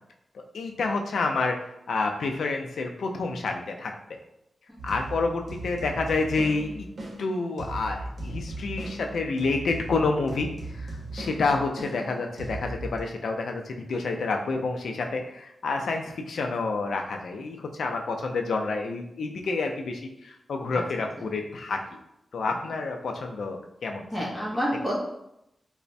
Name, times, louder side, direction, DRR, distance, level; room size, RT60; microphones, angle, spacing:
voice 1, 0.5-3.9 4.8-6.9 7.2-21.8 22.3-24.3, left 3 dB, 85° left, 3 dB, 0.3 m, -29 dB
sound 1, 4.8-13.0, right 2 dB, 60° right, 0.7 m, -38 dB
voice 2, 24.1-25.0, equal, ahead, -6 dB, 0.7 m, -30 dB
3.2 x 2.0 x 2.6 m, 0.83 s
wide cardioid pair, 120°, 0 cm